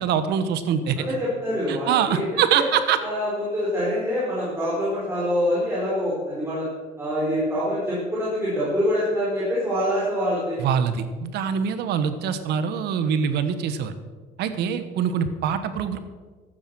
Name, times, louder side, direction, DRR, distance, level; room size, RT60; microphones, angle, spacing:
voice 1, 0.0-1.0 1.7-3.0 10.6-13.9 14.4-16.1, right 8 dB, 80° right, 11 dB, 1.2 m, -24 dB
voice 2, 1.0-2.2 2.5-2.6 3.0-6.7 7.0-10.6, equal, 15° right, -8 dB, 4.7 m, -25 dB
13.0 x 8.8 x 6.3 m, 1.4 s
cardioid pair, 110°, 17 cm